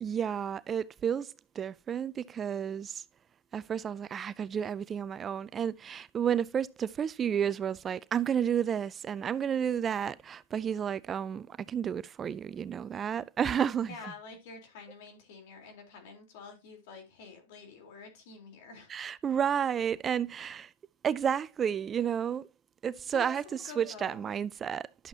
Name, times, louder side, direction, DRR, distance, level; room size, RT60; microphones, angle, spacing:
voice 1, 0.0-3.0 3.5-14.1 18.9-20.7 21.0-22.5 22.8-25.1, right 8 dB, 25° right, 0.4 m, -31 dB
voice 2, 13.9-18.9 23.1-24.3, left 4 dB, 65° left, 3.8 m, -48 dB
11.5 x 7.2 x 2.8 m
hypercardioid pair, 110°, 0 cm